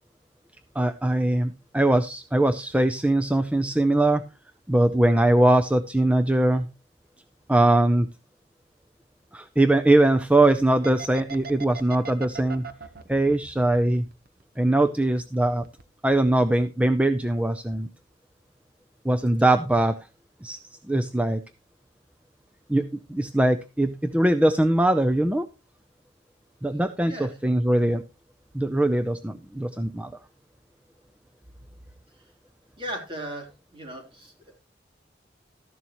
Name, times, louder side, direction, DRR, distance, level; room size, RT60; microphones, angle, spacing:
voice 1, 0.8-4.2 4.7-6.7 7.5-8.1 9.3-12.6 13.1-14.0 14.6-15.6 16.0-17.9 19.0-20.0 20.4-20.6 20.9-21.4 22.7-25.5 26.6-28.0 28.5-30.1, right 1 dB, 5° right, 9 dB, 0.5 m, -21 dB
sound 1, 10.8-14.6 14.9-15.8 16.1-16.3, right 5 dB, 55° right, 1.1 m, -39 dB
voice 2, 27.0-27.4 32.2-32.3 32.8-34.3, right 1 dB, 30° right, 2 dB, 3.6 m, -37 dB
14.0 x 11.0 x 3.1 m, 0.28 s
head